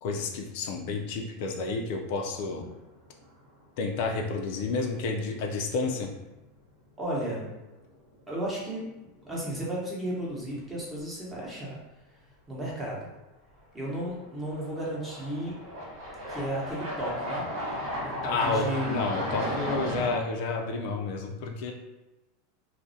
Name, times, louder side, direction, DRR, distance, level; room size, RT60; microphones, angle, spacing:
voice 1, 0.0-2.6 3.8-6.1 18.2-21.7, left 3 dB, 65° left, 2 dB, 0.3 m, -30 dB
sound 1, 2.2-2.8 3.2-3.3 6.2-6.3 7.6-7.8 8.2-8.3 13.6-13.7 14.5-20.1, equal, 65° right, 0.9 m, -34 dB
voice 2, 7.0-7.5 8.3-8.9 9.2-11.8 12.5-13.1 13.7-15.5 16.3-17.5 18.0-18.9, right 1 dB, 15° right, -5 dB, 0.8 m, -34 dB
2.3 x 2.1 x 2.6 m, 1.0 s
supercardioid pair, 130°, 0 cm